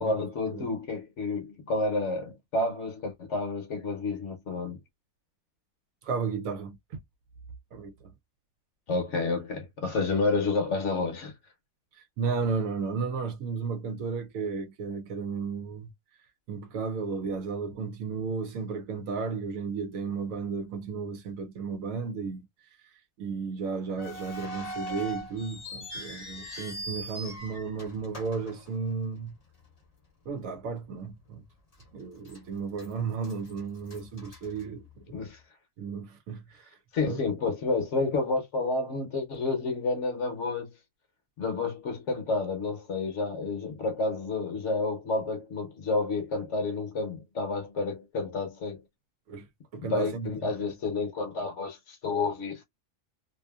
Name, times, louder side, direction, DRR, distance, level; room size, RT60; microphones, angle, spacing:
voice 1, 0.0-4.8 8.9-11.3 35.1-35.4 36.9-40.7 41.4-48.8 49.8-52.7, left 3 dB, 60° left, 1.0 m, -30 dB
voice 2, 6.0-7.0 7.7-8.1 11.9-15.9 16.5-22.5 23.2-29.4 30.3-31.4 31.9-35.0 35.8-36.8 37.0-37.2 49.3-49.5 49.7-50.7, right 5 dB, 70° right, 0.9 m, -34 dB
sound 1, 24.0-29.3 29.6-29.7 30.4-30.6 31.1-31.2 31.8-32.4 32.7-35.2, equal, 35° left, 0.7 m, -41 dB
2.6 x 2.5 x 2.3 m
omnidirectional pair, 1.6 m